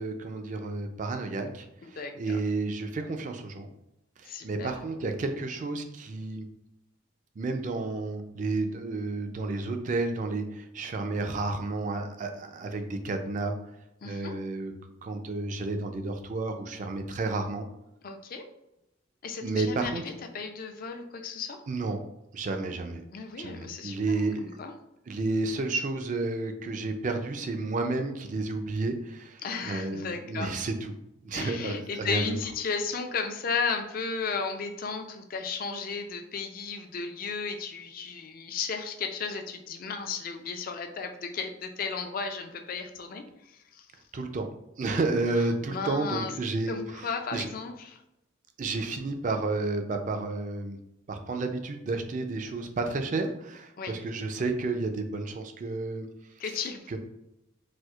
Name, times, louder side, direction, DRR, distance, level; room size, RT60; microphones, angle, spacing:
voice 1, 0.0-3.7 4.2-6.5 7.4-13.6 14.0-14.7 15.0-17.7 19.4-20.0 21.7-22.0 22.3-23.0 23.4-24.6 25.1-30.9 31.2-32.4 44.1-44.5 44.8-47.5 48.6-50.8 51.1-56.1 56.9-57.0, right 3 dB, 40° right, 6 dB, 0.4 m, -31 dB
voice 2, 1.8-2.4 4.3-4.7 14.0-14.4 18.0-18.5 19.2-21.6 23.1-24.7 29.4-30.5 31.3-43.9 45.3-46.3 46.7-48.0 53.8-54.0 56.4-57.0, left 5 dB, 45° left, 6 dB, 0.4 m, -34 dB
4.3 x 2.4 x 2.3 m, 0.88 s
head